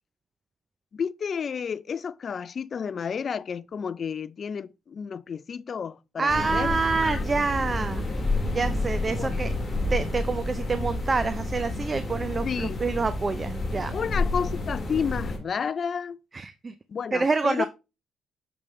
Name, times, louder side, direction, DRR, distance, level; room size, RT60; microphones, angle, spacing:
voice 1, 0.9-7.2 9.2-9.4 12.4-12.9 13.9-16.2 16.9-17.7, left 6 dB, 50° left, 0.4 m, -31 dB
voice 2, 6.2-8.1 8.5-9.5 9.9-13.9 16.3-16.7 17.1-17.7, right 4 dB, 30° right, 0.5 m, -27 dB
sound 1, 6.3-15.4, left 2 dB, 25° left, 2.0 m, -29 dB
6.9 x 5.2 x 3.1 m
cardioid pair, 90°, 0 cm